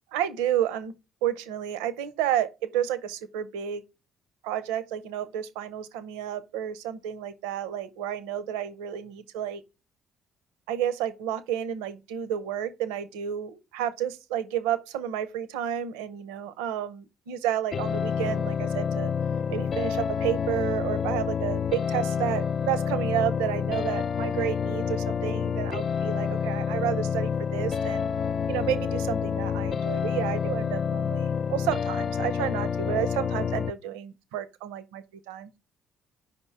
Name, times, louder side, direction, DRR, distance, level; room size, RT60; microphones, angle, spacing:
voice 1, 0.1-0.9 1.2-3.8 4.4-9.6 10.7-19.1 19.5-28.1 28.5-35.5, right 10 dB, 75° right, 0.5 m, -31 dB
sound 1, 17.7-33.7, left 7 dB, 45° left, 0.3 m, -28 dB
5.2 x 3.6 x 5.5 m
hypercardioid pair, 50°, 0 cm